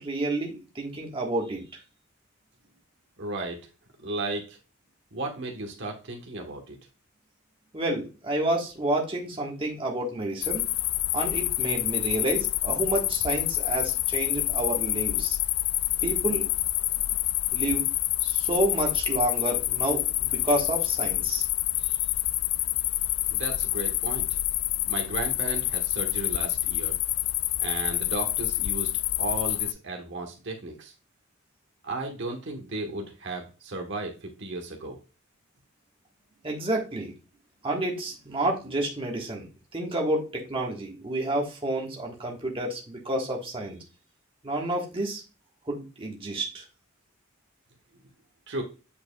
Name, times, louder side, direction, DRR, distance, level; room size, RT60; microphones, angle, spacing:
voice 1, 0.0-1.6 7.7-10.6 11.1-15.4 16.0-16.5 17.5-17.9 18.2-21.4 36.4-37.1 37.6-39.5 39.7-43.8 44.4-45.2 45.7-46.6, right 1 dB, 25° right, -1 dB, 1.4 m, -29 dB
voice 2, 3.2-3.6 4.0-4.6 5.1-6.8 23.3-24.4 24.9-27.0 27.6-28.9 29.2-30.9 31.8-35.0 48.5-48.6, right 2 dB, 60° right, 3 dB, 1.2 m, -34 dB
sound 1, 10.4-29.7, left 16 dB, 75° left, 0.3 m, -27 dB
8.6 x 4.7 x 2.3 m, 0.32 s
head